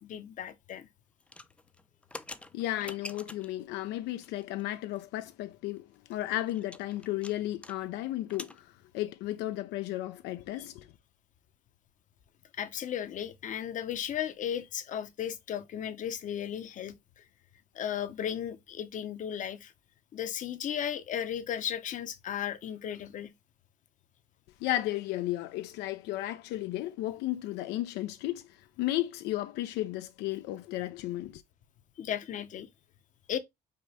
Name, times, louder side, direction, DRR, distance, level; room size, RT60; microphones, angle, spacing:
voice 1, 0.0-0.9 12.6-16.9 17.7-19.7 20.1-23.3 32.0-32.7 33.3-33.4, left 9 dB, 50° left, 0.6 m, -35 dB
sound 1, 1.2-3.6 4.2-4.6 4.9-5.0 5.3-5.4 5.8-8.6, left 2 dB, 5° left, 0.3 m, -46 dB
voice 2, 2.5-10.9 24.6-31.4, left 15 dB, 85° left, 0.4 m, -34 dB
5.1 x 2.1 x 3.9 m
cardioid pair, 110°, 17 cm